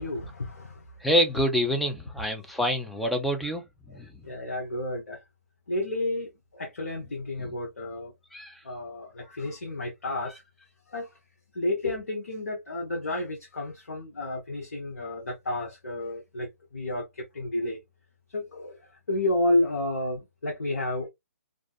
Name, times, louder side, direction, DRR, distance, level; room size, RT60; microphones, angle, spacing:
voice 1, 0.0-0.9 3.9-5.2 5.7-8.1 8.6-10.4 10.9-11.1 11.5-17.8 18.3-18.8 19.1-21.1, left 1 dB, 85° left, 0.8 m, -31 dB
voice 2, 1.0-3.6 3.9-4.1 8.3-8.5, equal, ahead, 0.4 m, -26 dB
2.5 x 2.3 x 2.3 m
hypercardioid pair, 140°, 8 cm